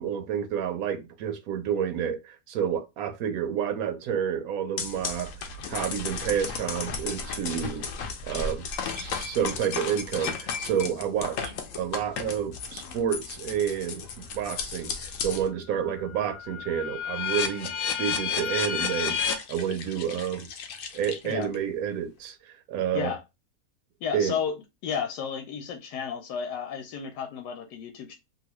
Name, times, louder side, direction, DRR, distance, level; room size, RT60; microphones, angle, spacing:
voice 1, 0.0-5.3 5.7-7.9 8.2-8.7 8.9-17.7 18.0-20.5 20.9-23.1 24.1-24.3, right 8 dB, 70° right, 1.0 m, -29 dB
sound 1, 4.8-15.5 15.9-21.5, left 6 dB, 65° left, 0.8 m, -33 dB
voice 2, 24.0-24.6 24.8-28.2, left 7 dB, 85° left, 1.2 m, -32 dB
3.0 x 2.3 x 2.9 m
omnidirectional pair, 1.8 m